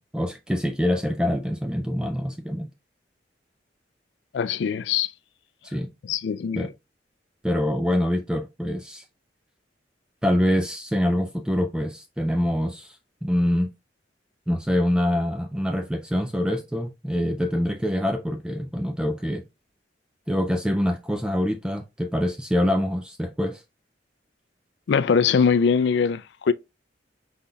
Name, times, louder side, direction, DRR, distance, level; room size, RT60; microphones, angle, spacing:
voice 1, 0.0-2.7 5.6-5.9 6.6-6.7 7.4-9.0 10.2-13.0 13.2-13.7 14.5-19.4 20.3-23.6, left 1 dB, 5° right, 0.3 m, -25 dB
voice 2, 4.3-5.1 6.1-6.7 24.9-26.5, left 6 dB, 70° left, 0.3 m, -22 dB
5.6 x 3.9 x 2.2 m
head